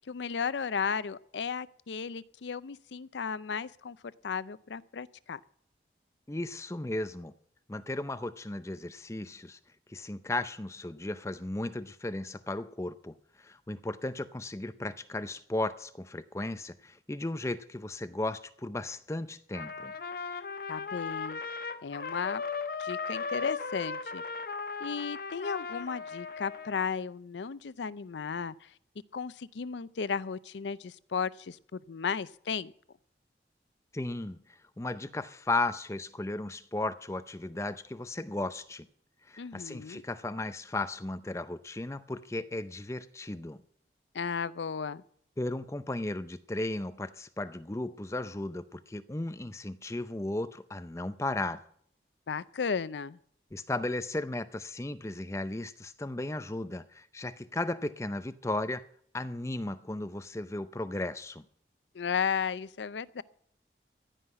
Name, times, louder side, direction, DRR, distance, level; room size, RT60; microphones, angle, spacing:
voice 1, 0.1-4.0 4.2-5.4 20.7-21.4 21.8-22.4 22.8-24.2 24.8-28.7 29.1-32.7 39.4-40.0 44.1-45.0 52.3-53.2 61.9-63.2, left 6 dB, 90° left, 0.5 m, -34 dB
voice 2, 6.3-7.3 7.7-9.6 9.9-19.9 33.9-38.9 39.3-43.6 45.4-51.6 53.5-58.8 59.1-61.5, left 2 dB, 15° left, 0.5 m, -35 dB
Trumpet, 19.5-26.9, left 5 dB, 55° left, 0.7 m, -37 dB
15.5 x 5.7 x 9.6 m
head